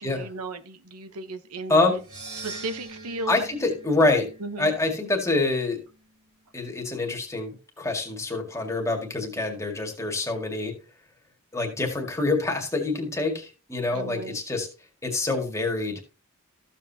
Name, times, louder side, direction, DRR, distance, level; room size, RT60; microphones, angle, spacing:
voice 1, 0.0-1.8 2.4-3.4 4.4-4.7 13.9-14.4, right 2 dB, 85° right, 1.0 m, -35 dB
voice 2, 1.7-2.0 3.3-4.3 4.6-5.8 6.5-10.7 11.5-14.7 15.0-16.0, left 2 dB, 15° left, 2.0 m, -26 dB
sound 1, 2.0-6.3, right 2 dB, 65° right, 3.6 m, -44 dB
14.0 x 7.4 x 2.8 m
head